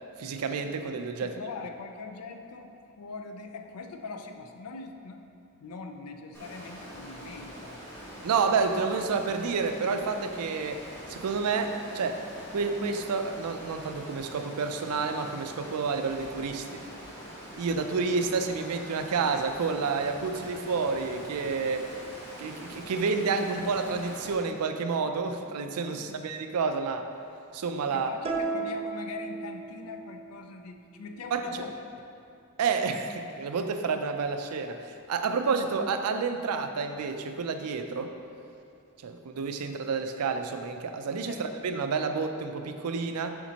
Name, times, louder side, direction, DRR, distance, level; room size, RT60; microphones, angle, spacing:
voice 1, 0.2-1.4 8.2-10.8 11.1-12.2 12.5-16.8 17.5-21.9 22.4-27.1 27.5-28.1 31.3-31.5 32.6-38.1 39.0-43.4, right 4 dB, 85° right, 7 dB, 0.4 m, -29 dB
voice 2, 1.2-5.2 5.6-7.8 25.9-26.2 27.9-31.8 41.3-41.4, left 4 dB, 75° left, 5 dB, 0.5 m, -41 dB
Water, 6.3-24.3, equal, 10° left, 1.2 m, -44 dB
sound 1, 28.2-30.0, right 4 dB, 25° right, 0.4 m, -33 dB
7.1 x 5.0 x 2.8 m, 2.6 s
head